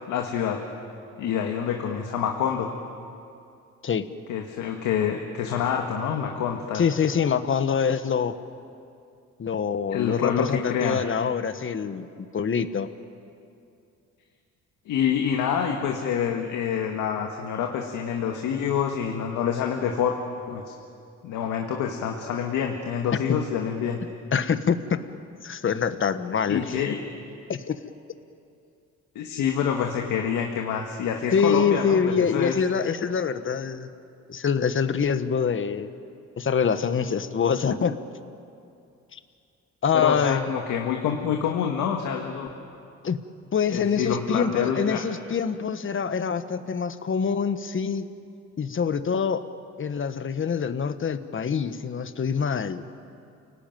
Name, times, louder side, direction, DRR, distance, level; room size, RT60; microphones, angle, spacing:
voice 1, 0.1-0.6 1.2-2.7 4.3-6.8 9.9-11.0 14.9-20.1 20.5-20.7 21.2-24.1 26.5-27.0 29.2-32.6 39.9-42.5 43.7-45.0, left 8 dB, 85° left, 2 dB, 1.8 m, -27 dB
voice 2, 6.7-8.4 9.4-12.9 23.3-23.4 24.3-25.0 25.4-26.8 27.5-27.7 31.3-33.9 34.3-35.9 36.4-38.0 39.1-39.2 39.8-40.4 43.0-43.2 43.5-48.1 48.6-49.4 49.8-52.8, left 6 dB, 40° left, 11 dB, 1.3 m, -25 dB
29.0 x 18.5 x 9.2 m, 2.6 s
cardioid pair, 90°, 30 cm